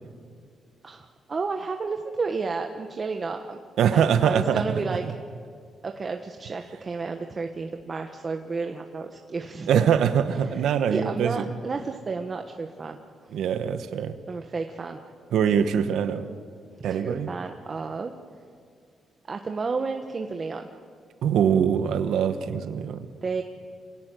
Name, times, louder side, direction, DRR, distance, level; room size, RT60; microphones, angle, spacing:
voice 1, 0.8-3.6 3.9-5.0 5.8-9.8 10.5-13.0 14.3-15.0 16.9-18.1 19.3-20.7 23.2-23.4, right 4 dB, 35° right, 4 dB, 1.4 m, -31 dB
voice 2, 3.8-5.0 9.7-11.4 13.3-14.1 15.3-16.3 16.8-17.3 21.2-23.1, right 8 dB, 90° right, 9 dB, 1.2 m, -23 dB
27.0 x 18.0 x 9.3 m, 2.2 s
cardioid pair, 110°, 0 cm